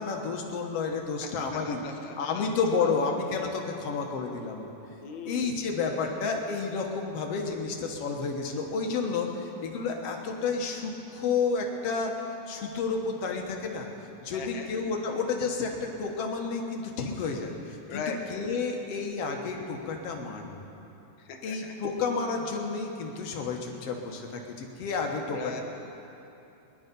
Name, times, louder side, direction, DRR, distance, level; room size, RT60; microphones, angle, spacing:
voice 1, 0.0-4.7 5.3-12.1 12.5-13.9 14.2-20.6 21.4-25.6, left 4 dB, 60° left, 2 dB, 1.8 m, -31 dB
voice 2, 1.6-2.5 5.0-5.6 14.3-14.7 17.9-18.4 21.3-21.7 23.7-23.8 25.3-25.6, left 5 dB, 85° left, 1 dB, 1.0 m, -39 dB
21.0 x 11.0 x 5.3 m, 2.9 s
omnidirectional pair, 4.0 m